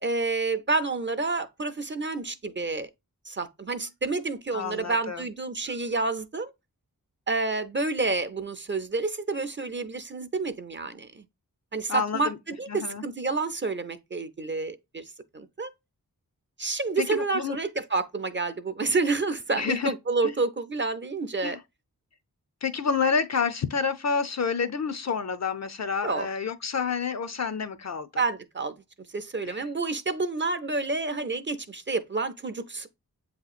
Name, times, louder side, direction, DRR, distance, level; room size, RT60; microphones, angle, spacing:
voice 1, 0.0-2.9 3.3-6.5 7.3-11.2 11.7-15.0 15.3-15.7 16.6-21.6 26.0-26.3 28.2-28.7 29.1-32.9, right 3 dB, 30° right, 0.5 m, -29 dB
voice 2, 4.5-5.3 11.9-12.4 12.7-13.0 17.0-17.6 19.5-19.9 20.2-20.3 21.4-21.6 22.6-28.2 29.4-29.7, left 6 dB, 45° left, 0.5 m, -29 dB
7.4 x 2.8 x 2.4 m
cardioid pair, 40°, 37 cm